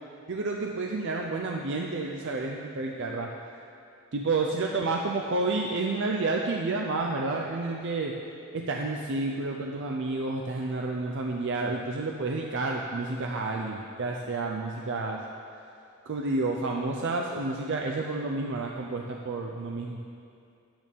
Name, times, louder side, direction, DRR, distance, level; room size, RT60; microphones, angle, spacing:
voice 1, 0.3-3.3 4.1-8.1 8.5-15.2 16.1-20.0, right 3 dB, 60° right, 0 dB, 0.5 m, -30 dB
10.5 x 8.8 x 3.6 m, 2.5 s
head